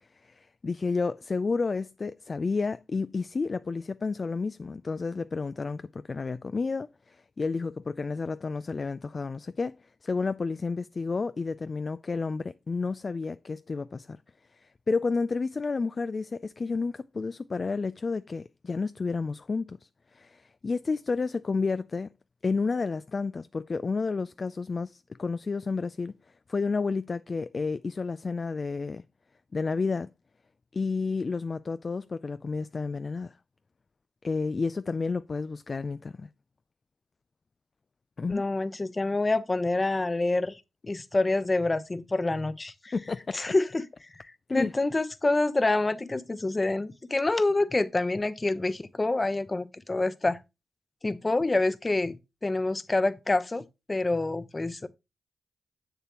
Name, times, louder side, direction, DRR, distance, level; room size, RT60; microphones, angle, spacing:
voice 1, 0.0-14.2 14.5-22.1 22.4-26.1 26.5-29.0 29.5-30.1 30.7-33.4 34.2-36.3 38.2-38.4 42.9-43.4 44.5-44.7, left 4 dB, 50° left, 0.3 m, -31 dB
voice 2, 38.3-40.6 40.9-42.9 43.3-43.9 44.1-50.4 51.0-52.2 52.4-54.9, left 2 dB, 35° left, 0.9 m, -27 dB
7.2 x 6.8 x 3.0 m
supercardioid pair, 40°, 0 cm